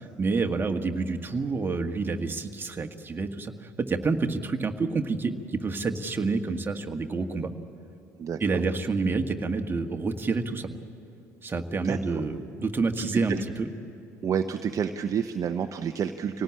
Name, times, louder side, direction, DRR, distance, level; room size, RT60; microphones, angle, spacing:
voice 1, 0.0-7.5 8.4-10.7 11.4-13.7, right 4 dB, 25° right, 5 dB, 1.6 m, -28 dB
voice 2, 8.2-8.6 11.8-12.2 13.0-13.4 14.2-16.4, right 7 dB, 40° right, 7 dB, 0.9 m, -30 dB
25.5 x 18.0 x 8.7 m, 2.8 s
hypercardioid pair, 60°, 9 cm